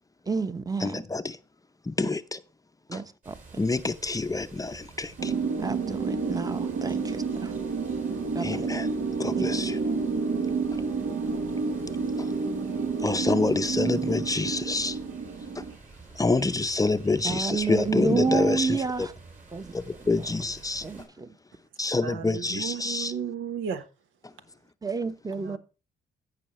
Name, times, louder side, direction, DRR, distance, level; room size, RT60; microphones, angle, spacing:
voice 1, 0.3-1.0 2.9-3.4 5.6-7.5 8.3-8.7 9.3-9.6 17.2-19.1 19.5-19.7 20.8-21.3 24.8-25.6, right 4 dB, 20° right, 1.0 m, -30 dB
voice 2, 0.8-1.4 1.8-2.4 2.9-3.0 3.6-5.3 8.4-8.9 9.2-9.8 12.2-12.3 13.0-15.0 15.5-15.6 16.1-19.1 19.7-21.1 21.8-23.1 24.2-24.3, left 3 dB, 15° left, 0.6 m, -27 dB
sound 1, 3.2-21.1, right 3 dB, 40° right, 4.5 m, -50 dB
sound 2, 5.2-15.8, right 4 dB, 70° right, 1.6 m, -29 dB
voice 3, 22.0-23.8 25.3-25.6, right 7 dB, 85° right, 1.2 m, -34 dB
15.5 x 5.6 x 3.1 m
cardioid pair, 90°, 20 cm